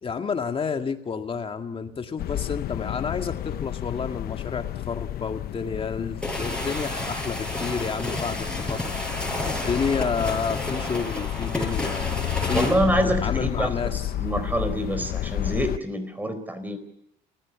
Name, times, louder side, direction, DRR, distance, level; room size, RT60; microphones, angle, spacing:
voice 1, 0.0-12.7 13.2-14.1, left 5 dB, 35° left, 6 dB, 2.0 m, -30 dB
sound 1, 2.2-15.8, left 13 dB, 65° left, 0.8 m, -31 dB
sound 2, 6.2-12.8, left 1 dB, 5° left, 7.6 m, -31 dB
voice 2, 12.5-16.8, right 1 dB, 10° right, 10 dB, 4.3 m, -26 dB
28.0 x 16.0 x 8.4 m, 0.78 s
cardioid pair, 110°, 17 cm